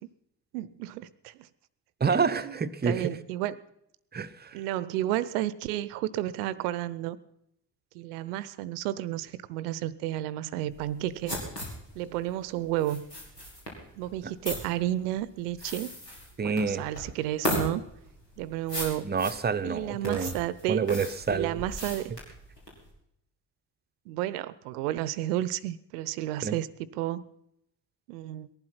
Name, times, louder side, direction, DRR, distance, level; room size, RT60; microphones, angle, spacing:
voice 1, 0.5-1.3 2.1-2.5 2.8-3.6 4.5-7.2 7.9-11.4 11.9-13.0 13.9-15.9 16.4-17.8 18.4-19.1 19.6-20.8 21.3-22.1 24.1-26.7 26.9-27.2 28.1-28.5, right 14 dB, 70° right, 18 dB, 0.8 m, -32 dB
voice 2, 2.0-3.1 4.1-4.6 16.4-16.9 19.0-20.3 20.7-21.5 26.4-26.5, right 5 dB, 20° right, 12 dB, 0.8 m, -28 dB
sound 1, 10.7-22.9, left 1 dB, 85° left, 3.1 m, -37 dB
18.5 x 11.5 x 5.8 m, 0.77 s
figure-of-eight pair, 45°, 48 cm